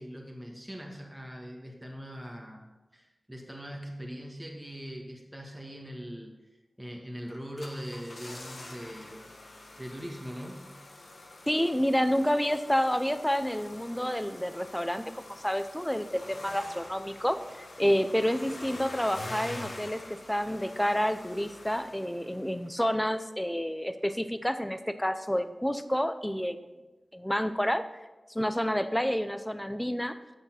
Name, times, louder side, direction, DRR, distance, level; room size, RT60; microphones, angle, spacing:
voice 1, 0.0-6.4 6.8-9.2 9.8-10.7, equal, 10° right, 0 dB, 1.5 m, -41 dB
sound 1, 7.3-22.8 23.1-23.2, left 2 dB, 60° left, 1.4 m, -46 dB
voice 2, 11.5-26.6 27.1-27.8 28.3-30.2, equal, 5° left, 11 dB, 0.6 m, -29 dB
8.7 x 6.7 x 5.8 m, 1.1 s
wide cardioid pair, 70°, 0 cm